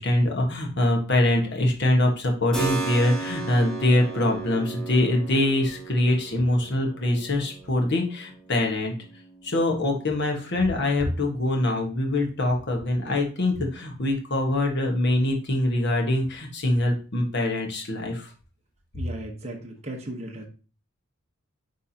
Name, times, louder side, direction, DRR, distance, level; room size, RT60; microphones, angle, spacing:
voice 1, 0.0-8.9 9.4-18.3, left 1 dB, 55° left, 1 dB, 1.4 m, -24 dB
Keyboard (musical), 2.5-11.1, right 4 dB, ahead, 2.4 m, -36 dB
voice 2, 18.9-20.5, right 1 dB, 30° right, -1 dB, 1.1 m, -36 dB
9.9 x 3.5 x 2.8 m, 0.36 s
head